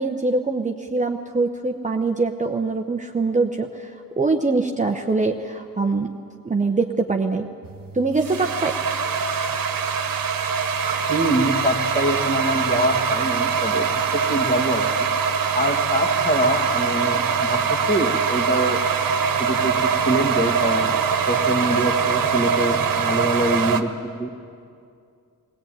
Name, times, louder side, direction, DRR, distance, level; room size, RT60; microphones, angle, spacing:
voice 1, 0.0-6.1 6.4-7.5 7.9-8.7, right 3 dB, 20° right, 3 dB, 0.8 m, -23 dB
sound 1, 7.6-23.8, right 6 dB, 65° right, 1.3 m, -23 dB
voice 2, 11.1-15.1 15.5-18.8 19.4-21.0 21.3-23.9 24.2-24.3, equal, 20° left, 2 dB, 2.1 m, -24 dB
20.5 x 18.5 x 9.1 m, 2.4 s
wide cardioid pair, 120°, 36 cm